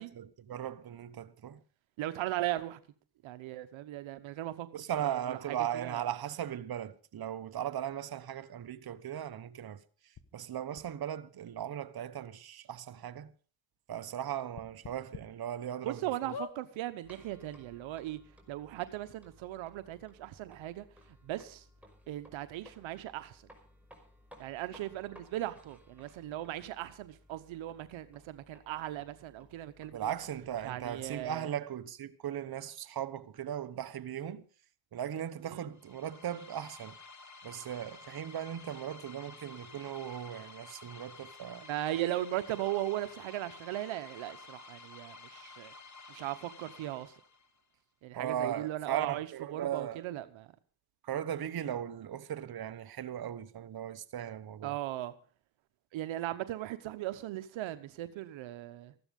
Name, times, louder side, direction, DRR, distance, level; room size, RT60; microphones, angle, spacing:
voice 1, 0.2-1.6 4.7-9.8 10.3-13.3 13.9-16.0 29.9-34.5 34.9-37.0 37.4-41.6 48.1-50.0 51.0-54.7, right 10 dB, 50° right, 1.1 m, -38 dB
voice 2, 2.0-2.8 3.2-4.7 5.0-6.1 15.8-18.2 18.5-20.9 21.2-21.7 22.1-23.4 24.4-30.1 30.6-31.5 35.4-35.7 41.6-45.7 46.1-47.1 48.0-50.5 54.6-55.2 55.9-58.9, right 14 dB, 85° right, 1.1 m, -38 dB
sound 1, 10.2-10.3 10.8-10.9 11.8-11.9 12.2-12.3 12.8-12.9 14.5-15.2 15.7-15.8 16.3-16.6 17.4-17.5 17.7-17.8, left 6 dB, 55° left, 1.9 m, -43 dB
sound 2, 17.0-31.3, equal, 5° right, 5.3 m, -60 dB
sound 3, 35.7-47.6, left 4 dB, 40° left, 2.0 m, -52 dB
14.5 x 12.5 x 5.3 m
supercardioid pair, 65°, 46 cm